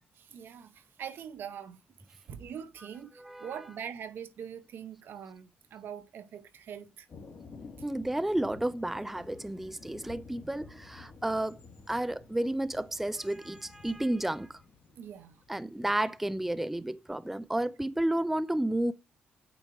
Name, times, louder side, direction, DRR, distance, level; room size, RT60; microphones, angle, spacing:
voice 1, 0.1-1.8 2.3-7.1 14.9-15.4, right 8 dB, 70° right, 0.8 m, -43 dB
voice 2, 3.2-3.5 7.8-11.6 11.9-14.6 15.5-18.9, right 1 dB, 5° right, 0.4 m, -31 dB
Thunder, 7.1-16.1, left 4 dB, 55° left, 1.7 m, -52 dB
8.7 x 3.0 x 4.7 m
cardioid pair, 80°, 4 cm